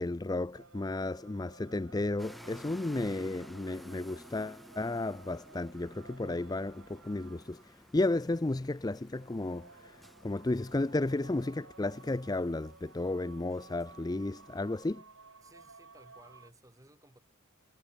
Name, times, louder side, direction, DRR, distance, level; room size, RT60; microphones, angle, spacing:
voice 1, 0.0-15.0, left 2 dB, 20° left, 0.4 m, -33 dB
sound 1, 0.5-16.5, right 3 dB, 70° right, 5.3 m, -56 dB
sound 2, 2.2-14.9, equal, ahead, 1.1 m, -55 dB
voice 2, 15.4-17.2, right 1 dB, 15° right, 6.0 m, -58 dB
head